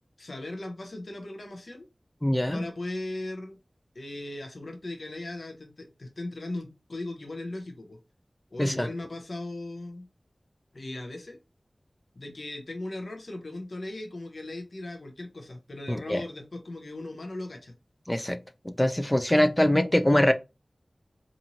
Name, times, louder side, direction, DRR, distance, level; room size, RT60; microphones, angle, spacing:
voice 1, 0.2-1.9 2.5-3.6 3.9-8.0 8.5-10.1 10.7-11.4 12.1-17.7, left 2 dB, 75° left, 0.7 m, -38 dB
voice 2, 2.2-2.7 8.6-8.9 15.9-16.2 18.1-20.3, left 1 dB, 15° left, 0.3 m, -23 dB
2.9 x 2.6 x 2.7 m
wide cardioid pair, 55°, 0 cm